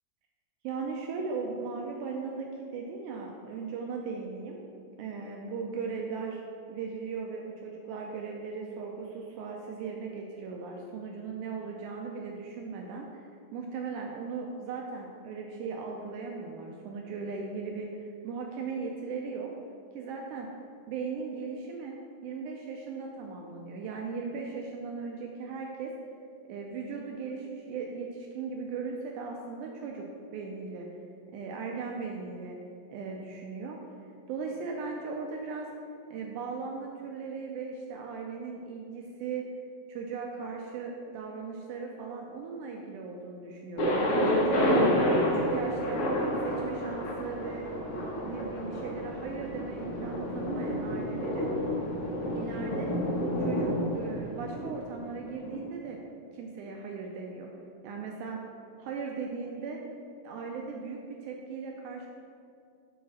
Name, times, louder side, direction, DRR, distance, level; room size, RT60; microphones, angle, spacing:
voice 1, 0.6-4.6 5.0-6.4 6.7-19.5 20.0-20.5 20.9-22.0 22.2-25.9 26.5-30.1 30.3-30.9 31.3-32.6 32.9-33.8 34.3-35.7 36.1-39.5 39.9-44.8 45.2-46.0 46.4-47.7 48.2-51.5 52.3-52.9 53.4-56.0 56.3-57.5 57.8-58.4 58.8-59.8 60.2-62.1, right 5 dB, 85° right, 0 dB, 1.8 m, -38 dB
Thunder, 43.8-55.6, equal, 65° left, 1.4 m, -29 dB
7.1 x 4.1 x 6.0 m, 2.4 s
omnidirectional pair, 4.1 m